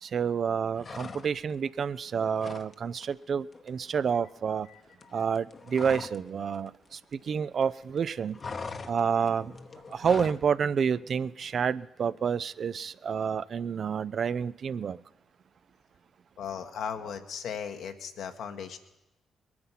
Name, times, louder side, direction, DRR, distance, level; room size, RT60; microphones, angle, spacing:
voice 1, 0.0-4.7 5.1-8.4 8.9-9.6 9.9-15.0, right 6 dB, 60° right, 0.4 m, -29 dB
sound 1, 0.8-1.6 1.9-2.7 3.0-3.2 3.5-6.3 6.5-7.6 7.9-10.5, left 4 dB, 45° left, 1.0 m, -42 dB
voice 2, 4.6-5.2 16.4-18.8, left 7 dB, 75° left, 1.3 m, -38 dB
21.5 x 9.6 x 5.7 m
supercardioid pair, 50°, 0 cm